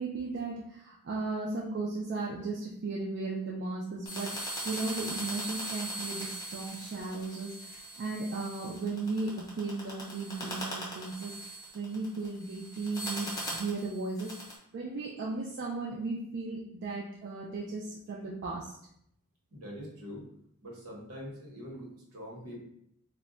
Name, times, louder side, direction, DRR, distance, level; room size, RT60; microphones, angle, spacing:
voice 1, 0.0-4.4 4.6-7.5 8.0-11.3 11.7-14.3 14.7-18.7, right 3 dB, 50° right, -4 dB, 0.3 m, -36 dB
sound 1, 4.1-14.6, right 1 dB, 15° left, 0.6 m, -40 dB
voice 2, 19.5-20.3 20.6-22.6, equal, 80° right, -3 dB, 0.9 m, -44 dB
2.1 x 2.1 x 3.7 m, 0.72 s
head